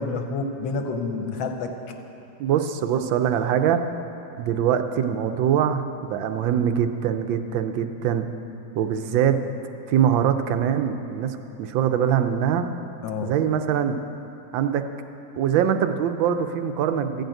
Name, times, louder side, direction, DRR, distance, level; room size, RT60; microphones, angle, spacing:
voice 1, 0.0-1.7 13.0-13.3, left 4 dB, 80° left, 4 dB, 1.7 m, -28 dB
voice 2, 2.4-3.8 4.4-8.3 8.7-9.4 9.9-12.7 13.2-14.0 14.5-14.8 15.4-17.2, right 9 dB, 80° right, 8 dB, 1.3 m, -23 dB
13.5 x 5.3 x 8.9 m, 2.9 s
omnidirectional pair, 2.1 m